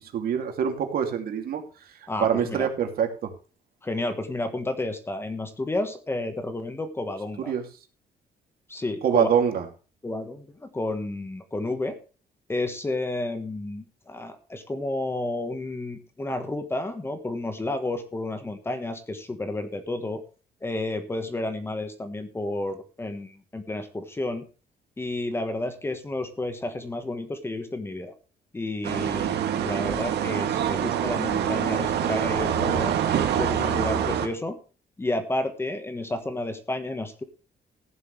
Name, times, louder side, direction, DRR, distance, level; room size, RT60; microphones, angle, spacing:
voice 1, 0.1-1.6 2.2-3.3 7.5-7.6 9.0-9.6, right 8 dB, 60° right, 4 dB, 2.8 m, -24 dB
voice 2, 2.1-2.7 3.8-7.5 8.7-9.3 10.0-12.0 12.5-20.2 20.6-24.4 25.0-28.1 28.5-32.9 33.4-34.6 35.0-37.2, left 2 dB, 15° left, 8 dB, 1.4 m, -31 dB
sound 1, 28.8-34.3, right 9 dB, 80° right, 2.3 m, -25 dB
15.5 x 11.0 x 3.3 m, 0.35 s
cardioid pair, 180°, 17 cm